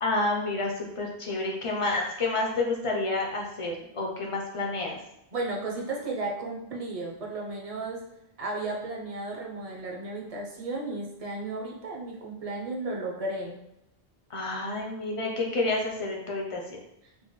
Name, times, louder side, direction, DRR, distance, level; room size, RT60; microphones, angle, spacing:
voice 1, 0.0-5.0 14.3-16.8, left 2 dB, 45° left, -1 dB, 0.4 m, -29 dB
voice 2, 5.3-8.0 8.4-13.6, right 2 dB, 40° right, -1 dB, 0.6 m, -34 dB
4.1 x 2.0 x 3.1 m, 0.84 s
omnidirectional pair, 1.1 m